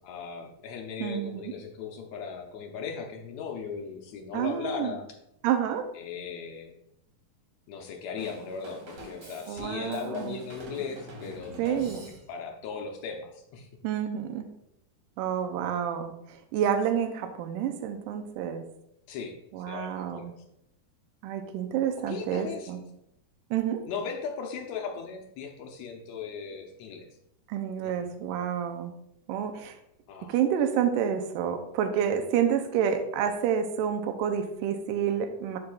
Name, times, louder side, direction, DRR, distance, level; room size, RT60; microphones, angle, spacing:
voice 1, 0.0-5.1 5.9-6.7 7.7-12.0 12.3-13.7 19.1-19.3 19.7-20.3 22.1-22.8 23.9-27.1 27.8-28.1 30.1-30.3, left 6 dB, 75° left, 3 dB, 1.7 m, -38 dB
voice 2, 1.0-1.5 4.3-5.0 5.4-5.9 9.5-10.4 11.6-12.1 13.8-14.5 15.2-18.6 19.5-20.3 21.2-22.8 23.5-23.8 27.5-28.9 29.3-29.8 30.3-35.6, right 8 dB, 85° right, 7 dB, 2.2 m, -29 dB
Drum kit / Drum, 8.2-12.5, right 1 dB, 60° right, 2.6 m, -46 dB
11.5 x 5.2 x 2.3 m, 0.80 s
omnidirectional pair, 3.8 m